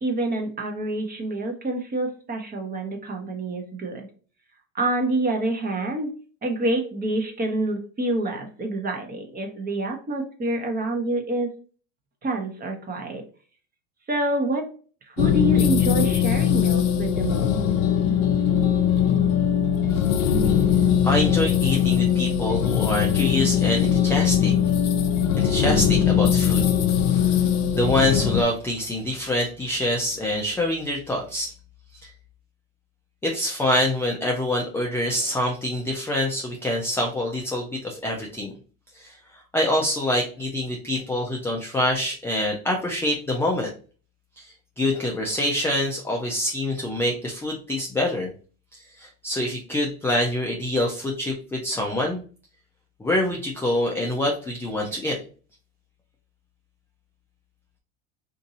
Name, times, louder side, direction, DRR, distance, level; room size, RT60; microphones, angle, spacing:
voice 1, 0.0-4.1 4.7-6.1 6.4-11.6 12.2-13.2 14.1-14.7 15.1-17.5, right 2 dB, 20° right, 4 dB, 0.9 m, -27 dB
sound 1, 15.2-28.4, left 8 dB, 55° left, 0.6 m, -21 dB
voice 2, 21.0-24.5 25.3-26.7 27.7-31.5 32.0-32.1 33.2-38.5 38.9-39.2 39.5-43.7 44.4-48.3 48.7-52.2 53.0-55.2, left 1 dB, 5° left, 0 dB, 0.4 m, -25 dB
2.7 x 2.6 x 4.0 m, 0.39 s
supercardioid pair, 110°, 40 cm